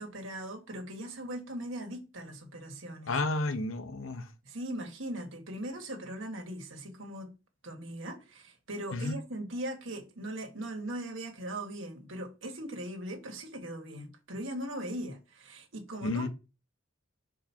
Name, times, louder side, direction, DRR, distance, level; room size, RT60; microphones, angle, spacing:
voice 1, 0.0-3.2 4.4-7.3 7.6-16.3, right 1 dB, 70° right, 1.6 m, -39 dB
voice 2, 3.1-4.2 8.9-9.2 16.0-16.3, left 2 dB, 80° left, 0.8 m, -31 dB
5.8 x 4.6 x 4.4 m
head